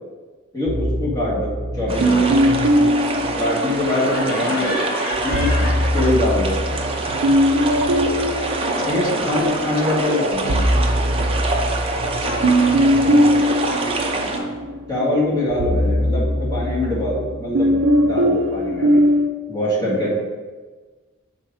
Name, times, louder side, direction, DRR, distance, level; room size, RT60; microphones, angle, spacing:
voice 1, 0.5-2.3 3.4-4.8 5.2-5.5 5.9-6.6 8.9-10.5 14.9-19.0 19.5-20.2, left 1 dB, 20° left, -6 dB, 1.8 m, -23 dB
sound 1, 0.7-4.2 5.1-9.6 10.0-19.3, equal, 85° right, 0.6 m, -20 dB
sound 2, 1.9-14.4, right 2 dB, 30° right, 0.7 m, -26 dB
voice 2, 2.0-2.3 4.4-4.8 8.6-10.7 12.0-14.8, left 2 dB, 80° left, 4 dB, 0.8 m, -33 dB
Laughter, 3.8-6.6 6.9-9.8, left 1 dB, 45° left, 1.2 m, -33 dB
6.2 x 3.9 x 4.8 m, 1.4 s
head